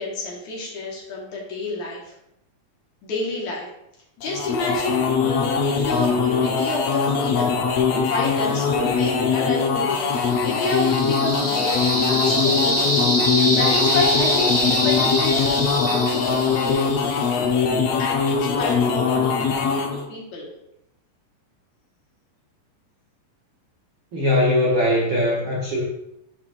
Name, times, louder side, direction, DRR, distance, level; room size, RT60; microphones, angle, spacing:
voice 1, 0.0-2.2 3.0-3.7 4.2-10.1 10.4-11.8 12.1-13.0 13.4-16.8 18.0-20.5, left 3 dB, 65° left, -3 dB, 2.5 m, -30 dB
sound 1, 4.2-20.1, left 5 dB, 85° left, 1.4 m, -22 dB
sound 2, 10.2-17.1, equal, 15° right, 0.5 m, -24 dB
voice 2, 24.1-25.8, left 1 dB, 75° right, -4 dB, 1.1 m, -20 dB
11.0 x 4.5 x 2.5 m, 0.83 s
omnidirectional pair, 4.0 m